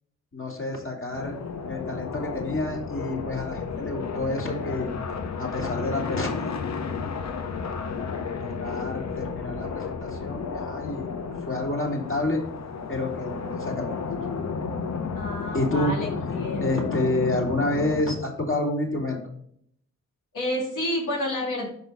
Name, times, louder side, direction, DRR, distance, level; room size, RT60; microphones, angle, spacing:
voice 1, 0.3-1.3 1.7-4.9 5.4-7.0 8.4-11.1 11.4-12.4 12.9-14.2 15.5-16.0 16.6-19.2, left 2 dB, 40° left, -2 dB, 3.0 m, -29 dB
sound 1, 1.1-18.0, left 5 dB, 60° left, 0.9 m, -32 dB
voice 2, 15.1-16.9 20.3-21.7, left 1 dB, 90° left, -2 dB, 2.4 m, -30 dB
5.4 x 4.7 x 5.4 m, 0.67 s
cardioid pair, 50°, 31 cm